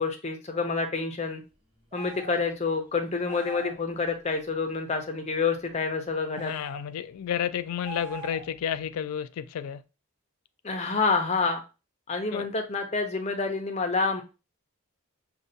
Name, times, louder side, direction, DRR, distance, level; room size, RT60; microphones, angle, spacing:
voice 1, 0.0-1.4 1.9-6.5 10.6-11.6 12.1-14.2, left 4 dB, 30° left, 0.6 m, -28 dB
sound 1, 1.9-2.4 3.2-3.8 6.3-6.8 7.8-8.6, right 5 dB, 35° right, 2.2 m, -42 dB
voice 2, 6.4-9.8 12.3-12.5, left 9 dB, 80° left, 0.3 m, -31 dB
5.3 x 2.3 x 2.6 m
head